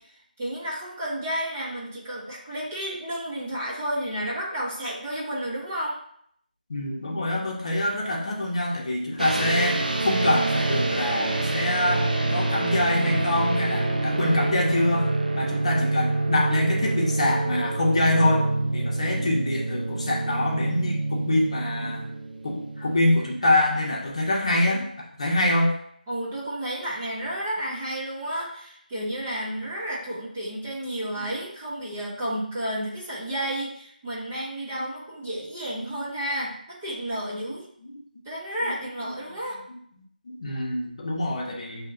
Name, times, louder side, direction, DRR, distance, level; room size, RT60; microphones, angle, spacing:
voice 1, 0.4-6.0 26.1-37.7 38.2-39.6, right 1 dB, 15° right, -6 dB, 0.6 m, -31 dB
voice 2, 6.7-22.1 22.4-25.7 34.7-34.8 36.0-36.1 37.8-38.0 39.0-39.1 40.2-41.9, left 1 dB, 40° left, -1 dB, 0.9 m, -25 dB
sound 1, 9.2-23.4, right 2 dB, 65° right, 0.6 m, -27 dB
6.5 x 2.8 x 2.4 m, 0.66 s
figure-of-eight pair, 170°, 5 cm